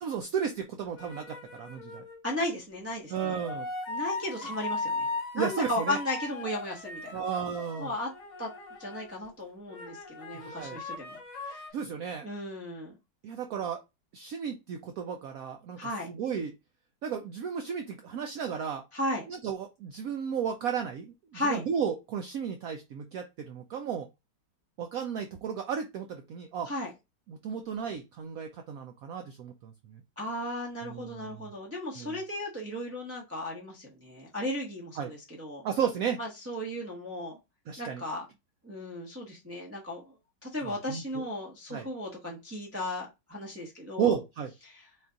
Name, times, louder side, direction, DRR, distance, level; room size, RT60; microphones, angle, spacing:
voice 1, 0.0-2.0 3.1-3.7 5.3-6.0 7.1-7.9 10.3-10.8 11.7-12.3 13.2-13.8 14.1-16.5 17.0-18.8 19.3-24.1 24.8-26.7 27.3-30.0 30.8-31.5 32.0-32.2 35.0-35.1 35.6-36.2 37.7-38.0 40.6-41.2 41.7-41.9 44.0-44.5, right 7 dB, 70° right, 5 dB, 0.8 m, -34 dB
sound 1, 1.0-2.2 3.1-9.3 9.7-11.7, left 3 dB, 65° left, 1.6 m, -38 dB
voice 2, 2.2-3.4 3.9-5.1 5.3-7.2 7.8-8.1 8.4-8.5 8.8-11.6 12.2-12.9 15.8-16.1 18.9-19.2 21.3-21.6 26.7-26.9 30.2-35.6 36.2-37.3 37.8-38.3 38.6-40.1 40.4-44.2 44.7-44.8, left 1 dB, 10° right, -3 dB, 0.7 m, -35 dB
4.3 x 2.4 x 3.8 m, 0.23 s
omnidirectional pair, 2.0 m